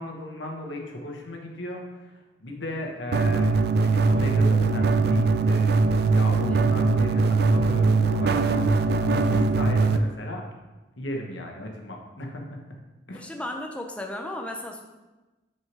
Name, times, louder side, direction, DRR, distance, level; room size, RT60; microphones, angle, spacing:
voice 1, 0.0-2.1 2.4-3.5 3.8-8.7 9.0-10.4 11.0-12.6 13.1-13.2, left 1 dB, 90° left, 1 dB, 1.2 m, -35 dB
sound 1, 3.1-10.0, right 3 dB, 60° right, 0.4 m, -21 dB
voice 2, 13.1-14.8, left 1 dB, 5° left, 2 dB, 0.5 m, -35 dB
6.2 x 4.6 x 4.7 m, 1.1 s
head